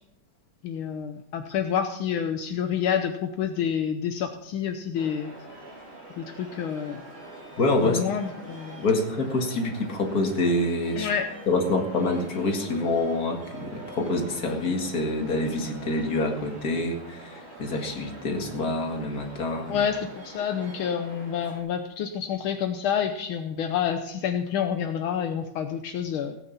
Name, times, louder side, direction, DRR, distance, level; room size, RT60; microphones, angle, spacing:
voice 1, 0.6-5.3 6.2-7.0 7.8-8.8 11.0-11.3 19.7-26.4, left 8 dB, 75° left, 6 dB, 1.7 m, -28 dB
Stadium Sound, 4.9-21.6, right 2 dB, 30° right, 4.4 m, -44 dB
voice 2, 7.6-8.1 8.8-11.1 11.5-19.8, left 2 dB, 45° left, 2 dB, 2.5 m, -26 dB
17.5 x 9.4 x 5.6 m, 0.76 s
omnidirectional pair, 2.3 m